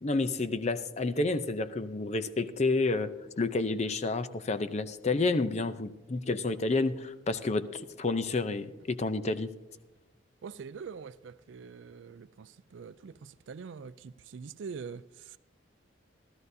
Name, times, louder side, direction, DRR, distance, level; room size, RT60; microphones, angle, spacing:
voice 1, 0.0-3.1 3.4-9.5, left 3 dB, 35° left, 0.5 m, -30 dB
voice 2, 10.4-15.4, right 5 dB, 70° right, 0.4 m, -44 dB
16.0 x 13.0 x 2.7 m
head